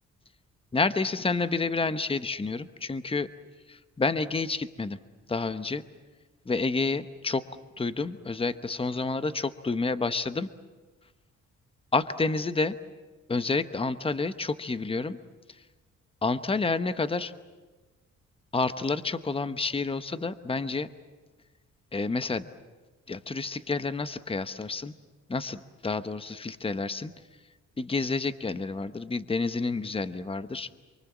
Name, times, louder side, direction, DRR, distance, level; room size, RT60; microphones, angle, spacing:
voice 1, 0.7-3.3 3.7-5.0 5.3-5.8 6.5-7.5 7.8-10.5 11.9-12.8 13.3-15.2 16.2-17.3 18.5-20.9 21.9-22.5 23.1-24.9 25.3-27.1 27.8-30.7, left 3 dB, 20° left, 12 dB, 1.1 m, -29 dB
27.5 x 24.0 x 7.4 m, 1.3 s
cardioid pair, 90°, 30 cm